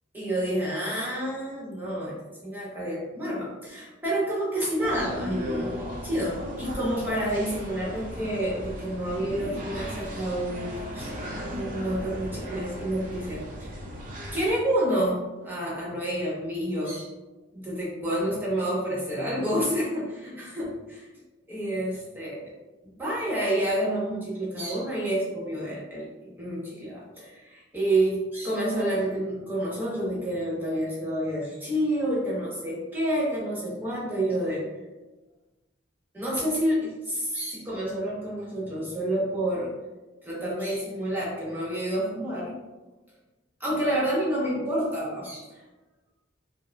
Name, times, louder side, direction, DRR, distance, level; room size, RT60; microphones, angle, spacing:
voice 1, 0.1-13.7 14.3-17.1 17.5-21.1 21.5-22.4 23.0-34.6 36.1-39.7 40.2-42.5 43.6-45.5, right 1 dB, 10° right, -7 dB, 0.8 m, -29 dB
sound 1, 4.8-14.5, equal, 40° right, 0.5 m, -36 dB
4.6 x 2.0 x 2.2 m, 1.2 s
head